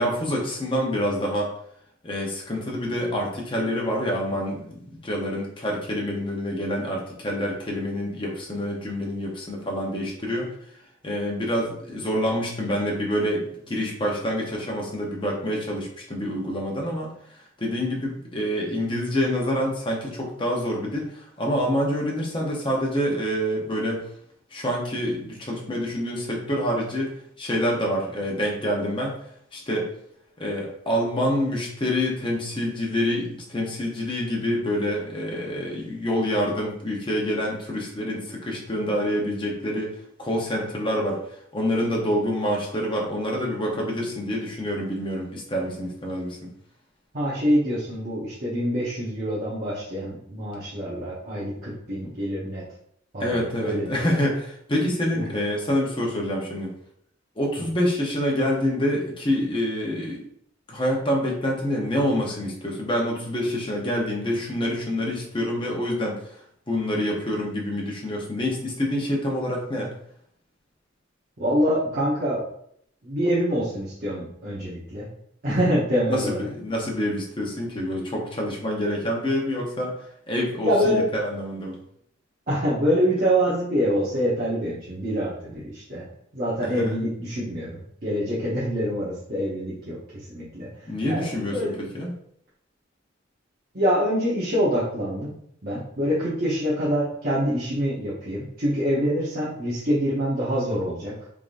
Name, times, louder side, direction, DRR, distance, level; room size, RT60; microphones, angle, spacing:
voice 1, 0.0-1.5 2.0-10.5 11.0-17.1 17.6-24.0 24.5-29.2 29.5-29.9 30.4-39.9 40.2-41.2 41.5-46.5 53.2-56.7 57.4-60.2 60.7-66.2 66.7-69.9 75.5-75.8 76.1-79.9 80.3-81.8 86.6-86.9 90.8-92.1, equal, 25° left, -2 dB, 0.9 m, -27 dB
voice 2, 47.1-52.6 53.1-54.1 55.1-55.2 57.6-57.7 71.4-72.4 73.0-75.1 75.4-76.5 80.6-81.0 82.5-86.1 86.3-90.7 91.1-91.8 93.7-95.3 95.6-101.1, equal, 50° right, -9 dB, 1.0 m, -25 dB
3.7 x 3.5 x 2.5 m, 0.68 s
head